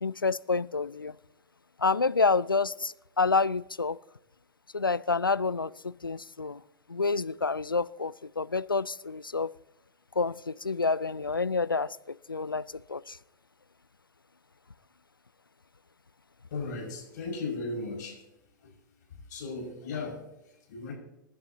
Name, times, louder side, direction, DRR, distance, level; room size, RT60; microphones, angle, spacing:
voice 1, 0.0-1.1 1.8-4.0 4.7-6.6 6.9-9.5 10.2-13.2, left 4 dB, 90° left, 20 dB, 0.4 m, -28 dB
voice 2, 16.5-18.3 18.6-18.7 19.1-20.9, left 3 dB, 60° left, -1 dB, 6.0 m, -37 dB
26.5 x 11.0 x 2.9 m, 0.85 s
figure-of-eight pair, 95°, 11 cm